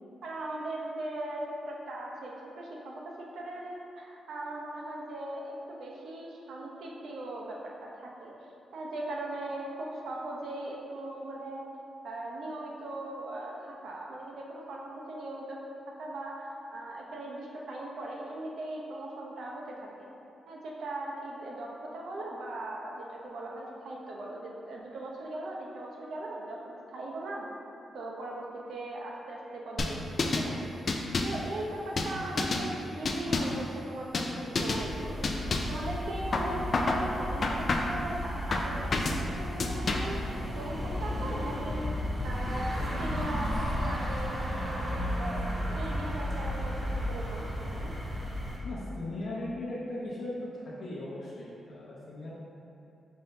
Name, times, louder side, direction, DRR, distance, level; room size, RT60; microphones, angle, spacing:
voice 1, 0.2-8.4 8.7-11.7 12.0-15.6 15.9-20.1 20.5-27.5 27.9-30.5 31.2-41.9 42.2-47.9, right 1 dB, 75° right, -2 dB, 0.7 m, -39 dB
sound 1, 29.8-30.5 30.9-31.4 32.0-32.7 33.0-33.6 34.1-34.3 34.6-34.9 35.2-35.8 36.3-37.0 37.4-38.0 38.5-39.2 39.6-40.2, left 3 dB, 45° left, 0.3 m, -29 dB
sound 2, 34.8-48.6, equal, 25° right, 0.7 m, -34 dB
voice 2, 48.6-50.4 50.8-52.3, left 2 dB, 65° left, -10 dB, 0.8 m, -38 dB
5.5 x 2.6 x 3.3 m, 2.7 s
cardioid pair, 115°, 0 cm